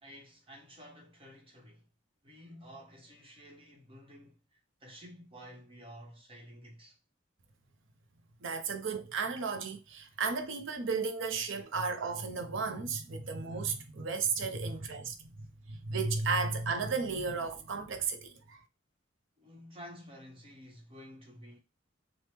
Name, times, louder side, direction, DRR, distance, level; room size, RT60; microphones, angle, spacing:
voice 1, 0.0-1.9 2.2-7.0 14.7-14.9 19.4-21.6, equal, 30° right, 0.9 m, -52 dB
voice 2, 8.4-18.6, right 4 dB, 70° right, 0.5 m, -34 dB
3.3 x 2.1 x 3.0 m
head